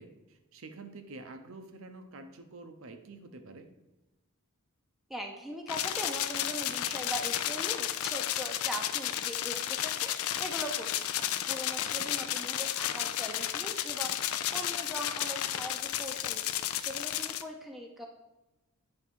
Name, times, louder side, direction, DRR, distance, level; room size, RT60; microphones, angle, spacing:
voice 1, 0.0-3.7 11.8-12.1, right 3 dB, 70° right, 7 dB, 0.7 m, -48 dB
voice 2, 5.1-14.2 14.5-18.1, right 1 dB, ahead, 0 dB, 0.6 m, -41 dB
sound 1, 5.7-17.4, left 11 dB, 80° left, 0.4 m, -33 dB
8.7 x 3.5 x 4.3 m, 1.0 s
head